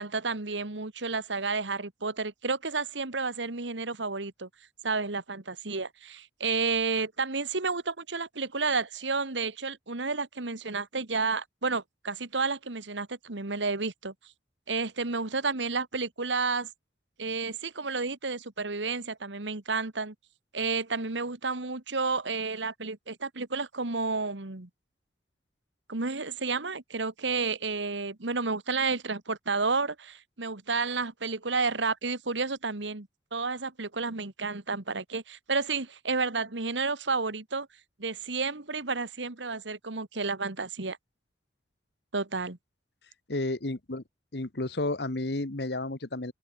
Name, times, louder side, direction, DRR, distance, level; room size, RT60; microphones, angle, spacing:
voice 1, 0.0-4.5 4.8-14.1 14.7-16.7 17.2-20.1 20.5-24.7 25.9-37.7 38.0-41.0 42.1-42.6, right 4 dB, 85° right, 1.9 m, -31 dB
voice 2, 43.3-44.0 44.3-46.3, left 2 dB, 65° left, 1.4 m, -31 dB
open air
head